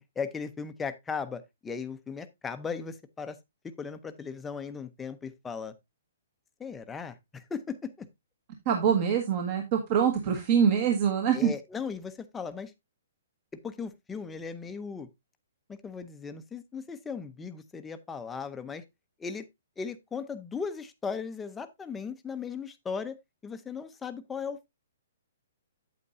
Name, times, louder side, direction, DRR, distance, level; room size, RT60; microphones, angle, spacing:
voice 1, 0.0-3.4 3.6-5.7 6.6-8.1 11.3-12.7 13.6-15.1 15.7-18.8 19.2-19.4 19.8-23.2 23.4-24.7, left 5 dB, 10° left, 0.7 m, -37 dB
voice 2, 8.6-11.5, right 8 dB, 35° right, 1.4 m, -24 dB
8.5 x 8.4 x 2.6 m
hypercardioid pair, 155°, 0 cm